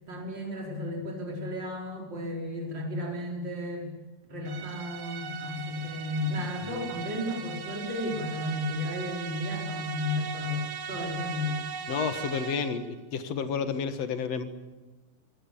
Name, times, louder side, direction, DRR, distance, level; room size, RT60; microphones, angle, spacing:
voice 1, 0.1-3.9 4.3-11.6, left 1 dB, 35° right, 0 dB, 5.4 m, -33 dB
sound 1, 4.5-12.9, right 7 dB, 65° right, 2.5 m, -39 dB
voice 2, 11.9-12.8 13.1-14.4, left 6 dB, 55° left, 9 dB, 2.5 m, -30 dB
26.0 x 16.5 x 8.7 m, 1.2 s
omnidirectional pair, 3.7 m